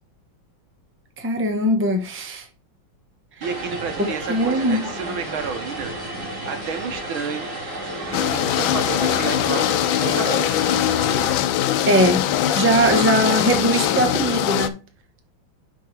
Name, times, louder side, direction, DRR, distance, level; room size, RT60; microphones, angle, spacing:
voice 1, 1.2-2.5 4.3-4.9 11.9-12.2 12.5-14.8, right 1 dB, 10° right, 0.7 m, -20 dB
Vehicle, 3.4-11.3, right 1 dB, 50° right, 2.4 m, -32 dB
voice 2, 3.4-5.9 6.5-7.5 8.1-9.7 10.0-10.5, right 6 dB, 85° right, 2.0 m, -30 dB
sound 1, 8.1-14.7, left 11 dB, 85° left, 1.4 m, -21 dB
10.5 x 4.6 x 3.2 m
omnidirectional pair, 2.2 m